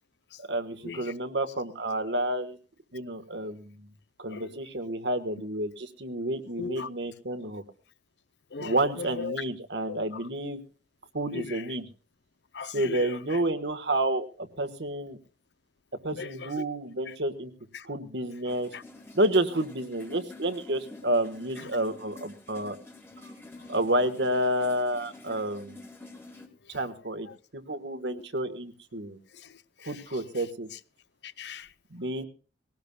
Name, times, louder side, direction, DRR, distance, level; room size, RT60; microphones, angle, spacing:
voice 1, 0.4-2.6 2.9-3.9 4.2-7.6 8.6-10.6 11.1-11.8 12.7-15.2 16.0-17.5 17.8-18.7 19.1-22.8 23.7-25.8 26.7-27.3 27.5-29.2 29.8-30.7 31.9-32.3, right 1 dB, 70° right, 1.5 m, -30 dB
voice 2, 6.6-6.9 8.5-9.4 9.9-10.2 11.3-11.7 12.5-13.4 16.1-16.6 17.1-17.2 17.7-17.9 18.7-18.8 23.6-23.7 26.6-26.8 27.3-27.4 28.0-28.3 29.3-30.0 30.4-30.5 31.2-31.7, left 5 dB, 65° left, 0.7 m, -39 dB
sound 1, 18.5-26.5, left 2 dB, 15° left, 2.1 m, -48 dB
21.0 x 18.0 x 2.3 m
head